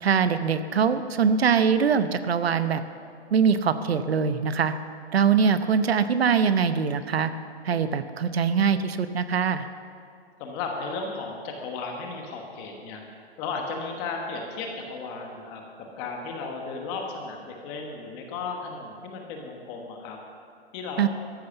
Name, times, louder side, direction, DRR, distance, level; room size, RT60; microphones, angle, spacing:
voice 1, 0.0-2.8 3.3-4.7 5.1-7.3 7.6-9.7 21.0-21.1, right 6 dB, 65° right, 11 dB, 0.9 m, -23 dB
voice 2, 10.4-13.0 13.4-15.6 16.0-20.2 20.7-21.1, left 4 dB, 15° left, 2 dB, 1.2 m, -34 dB
14.0 x 11.5 x 6.9 m, 2.4 s
hypercardioid pair, 165°, 33 cm